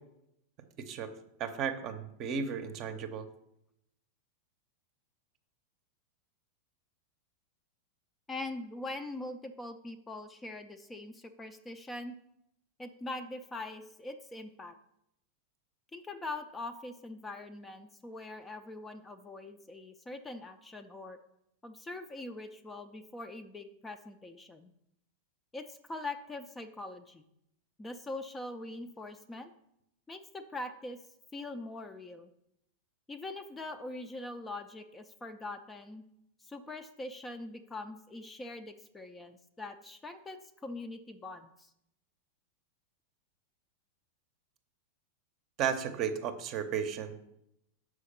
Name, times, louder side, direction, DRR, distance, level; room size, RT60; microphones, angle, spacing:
voice 1, 0.8-1.1 1.4-3.3 45.6-47.2, right 7 dB, 40° right, 8 dB, 0.7 m, -34 dB
voice 2, 8.3-12.1 12.8-14.8 15.9-21.2 21.6-24.7 25.5-27.2 27.8-29.5 30.1-31.0 31.3-32.3 33.1-36.0 36.4-41.7, left 2 dB, 15° left, 8 dB, 0.5 m, -42 dB
6.4 x 4.8 x 5.5 m, 0.80 s
figure-of-eight pair, 90°, 0 cm